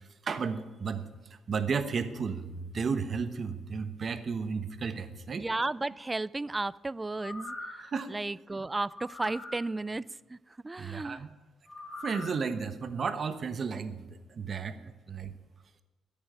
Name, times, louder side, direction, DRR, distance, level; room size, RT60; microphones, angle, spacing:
voice 1, 0.3-1.0 1.5-5.4 7.9-8.1 10.8-11.3 12.0-13.9 14.4-14.7 15.1-15.3, right 5 dB, 45° right, 10 dB, 1.1 m, -33 dB
voice 2, 5.3-10.4 10.6-11.2 14.8-14.9, right 2 dB, 20° right, 22 dB, 0.3 m, -34 dB
sound 1, 7.1-7.9 8.9-9.6 11.7-12.4 12.8-12.9, left 2 dB, 30° left, 3.2 m, -42 dB
10.0 x 8.8 x 9.2 m, 1.2 s
cardioid pair, 90°, 0 cm